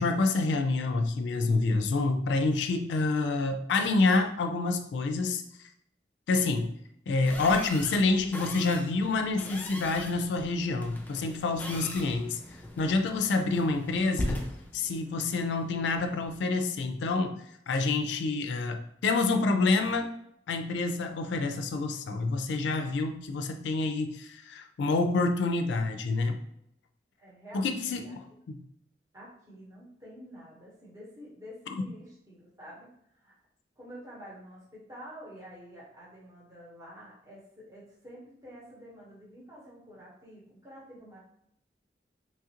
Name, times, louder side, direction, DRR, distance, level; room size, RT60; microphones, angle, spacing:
voice 1, 0.0-5.4 6.3-6.7 7.1-12.4 12.8-14.4 14.7-20.1 20.5-26.4 27.5-28.6, left 3 dB, 90° left, 6 dB, 0.3 m, -28 dB
sound 1, 7.3-16.4, left 1 dB, 10° left, 0.3 m, -40 dB
voice 2, 27.2-28.2 29.1-32.9 33.2-33.3 33.8-41.2, equal, 20° right, -6 dB, 0.9 m, -48 dB
3.1 x 2.4 x 2.8 m, 0.76 s
head